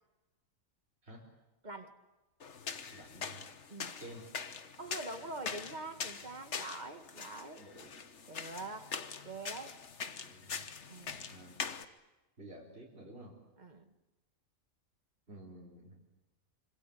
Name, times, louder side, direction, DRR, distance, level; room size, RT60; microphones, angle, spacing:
voice 1, 1.6-2.0 3.7-4.0 4.8-7.7 8.3-8.9 9.2-9.8 10.9-11.4 13.6-13.8, right 2 dB, 35° right, 7 dB, 2.0 m, -45 dB
sound 1, 2.4-11.8, left 6 dB, 60° left, 1.5 m, -43 dB
voice 2, 2.9-3.4 4.0-4.3 7.5-7.9 10.2-10.6 11.3-11.6 12.4-13.4 15.3-16.0, right 1 dB, 50° right, -4 dB, 4.4 m, -51 dB
26.0 x 25.5 x 8.7 m, 1.1 s
omnidirectional pair, 1.4 m